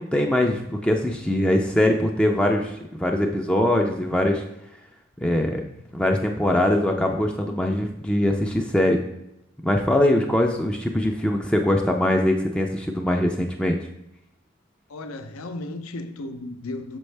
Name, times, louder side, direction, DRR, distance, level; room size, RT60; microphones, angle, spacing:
voice 1, 0.0-4.4 5.2-5.7 5.9-9.0 9.6-13.8, left 1 dB, 5° left, 0.3 m, -22 dB
voice 2, 14.9-17.0, left 2 dB, 90° left, 0.6 m, -34 dB
6.3 x 5.2 x 3.3 m
head